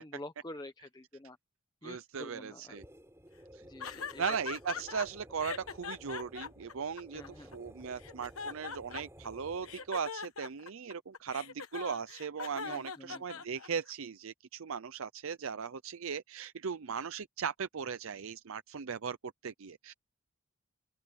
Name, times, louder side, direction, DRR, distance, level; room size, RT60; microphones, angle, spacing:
voice 1, 0.0-1.4 1.8-2.8 3.6-4.4 7.1-7.6 12.6-13.4, left 1 dB, 20° left, 0.9 m, -48 dB
voice 2, 1.8-2.8 3.5-3.6 4.2-19.2 19.4-19.9, right 6 dB, 65° right, 0.5 m, -38 dB
sound 1, 2.7-10.0, equal, 10° right, 5.2 m, -55 dB
sound 2, 3.8-5.1 5.4-7.5 8.0-9.3 9.6-13.9, left 6 dB, 75° left, 1.3 m, -41 dB
open air
head